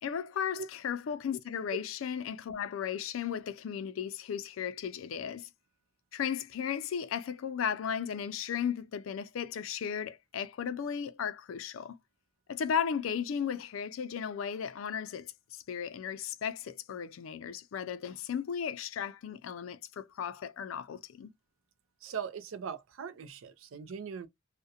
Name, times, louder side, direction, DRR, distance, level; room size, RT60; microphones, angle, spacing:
voice 1, 0.0-5.5 6.1-12.0 12.5-21.3, left 7 dB, 90° left, 0.4 m, -35 dB
voice 2, 22.0-24.3, right 7 dB, 85° right, 0.4 m, -40 dB
2.3 x 2.1 x 2.7 m
head